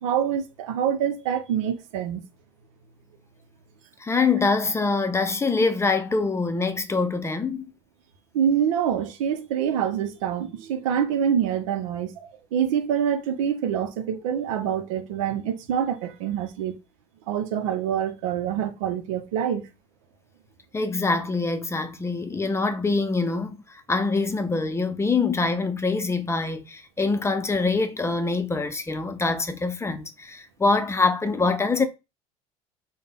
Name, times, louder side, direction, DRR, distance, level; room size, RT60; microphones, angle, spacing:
voice 1, 0.0-2.2 8.3-16.7 17.3-19.7, right 8 dB, 85° right, 0.7 m, -26 dB
voice 2, 4.0-7.6 20.7-31.8, left 3 dB, 15° left, 0.6 m, -24 dB
3.8 x 2.2 x 3.7 m
supercardioid pair, 90°, 17 cm